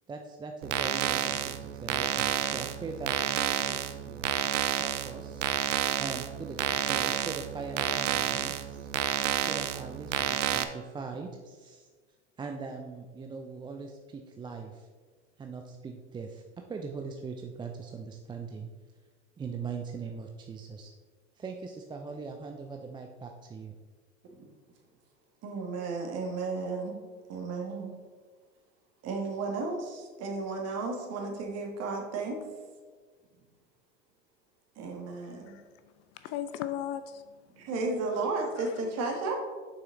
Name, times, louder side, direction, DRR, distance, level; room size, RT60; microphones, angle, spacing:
voice 1, 0.1-4.3 4.8-5.5 6.0-8.9 9.4-11.9 12.4-14.9 15.4-16.4 16.7-18.7 19.4-20.9 21.4-23.7, right 4 dB, 15° right, 3 dB, 0.4 m, -41 dB
sound 1, 0.6-10.6, right 11 dB, 75° right, 0.6 m, -30 dB
voice 2, 25.4-26.9 27.3-27.9 29.0-32.4 34.8-35.6 37.6-39.3, right 3 dB, 45° right, 2 dB, 1.7 m, -33 dB
voice 3, 35.2-35.7 36.1-37.3 38.1-38.9, left 11 dB, 45° left, 11 dB, 0.4 m, -38 dB
6.9 x 5.7 x 3.7 m, 1.5 s
hypercardioid pair, 90°, 37 cm